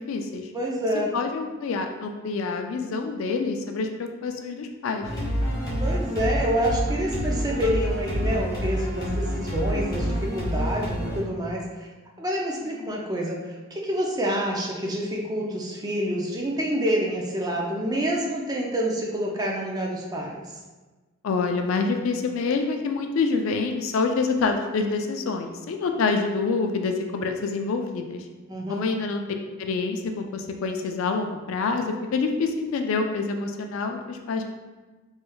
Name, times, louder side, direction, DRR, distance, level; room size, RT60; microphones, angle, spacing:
voice 1, 0.0-0.5 1.1-5.1 12.8-12.9 21.2-28.3 28.7-29.2 29.6-34.4, left 4 dB, 70° left, 4 dB, 0.3 m, -27 dB
voice 2, 0.5-1.1 5.8-11.9 12.2-13.4 13.7-20.4 28.5-28.9, equal, 20° right, -1 dB, 0.4 m, -27 dB
sound 1, 5.0-11.2, equal, 20° left, 1.3 m, -27 dB
3.1 x 3.1 x 2.2 m, 1.3 s
head